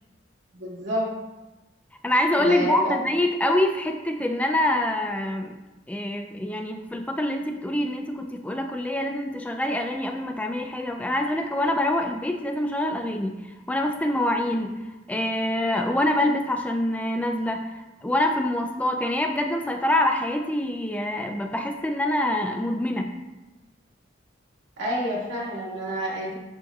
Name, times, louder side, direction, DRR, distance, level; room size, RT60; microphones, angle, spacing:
voice 1, 0.5-1.1 2.4-3.0 24.8-26.3, equal, 75° right, -5 dB, 2.1 m, -29 dB
voice 2, 2.0-5.6 5.9-14.8 15.1-23.1, left 1 dB, 10° left, 4 dB, 0.3 m, -25 dB
11.5 x 4.5 x 2.3 m, 1.1 s
head